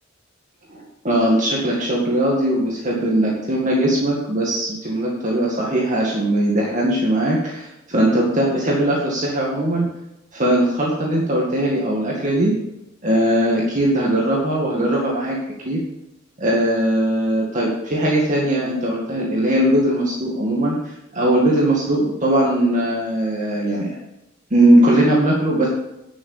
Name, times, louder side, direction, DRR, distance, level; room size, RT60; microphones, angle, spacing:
voice 1, 0.7-9.9 10.3-12.5 13.0-15.4 15.6-15.8 16.4-23.9 24.5-25.7, right 1 dB, 40° right, -3 dB, 2.1 m, -19 dB
10.5 x 6.9 x 6.8 m, 0.88 s
head